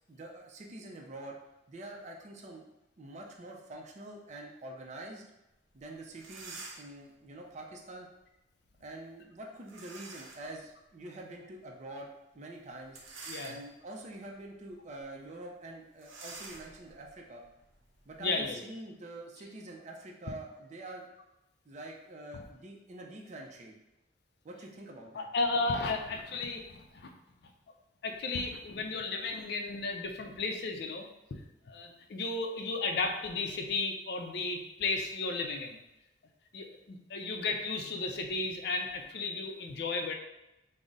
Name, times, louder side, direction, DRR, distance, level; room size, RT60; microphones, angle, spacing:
voice 1, 0.1-1.4 1.7-2.7 3.0-5.2 5.7-8.1 8.8-13.0 13.4-17.4 18.1-21.1 21.7-23.7 24.4-25.3, right 1 dB, 35° right, 0 dB, 0.4 m, -46 dB
sound 1, 5.8-5.9 6.1-7.0 9.7-10.5 11.1-11.2 12.8-14.0 14.5-14.7 15.0-15.1 16.0-18.5, right 3 dB, 90° right, 0.6 m, -48 dB
voice 2, 18.2-18.6 25.1-27.1 28.0-31.1 31.7-35.8 36.5-40.1, left 3 dB, 55° left, 4 dB, 0.4 m, -34 dB
3.6 x 2.0 x 3.9 m, 0.91 s
head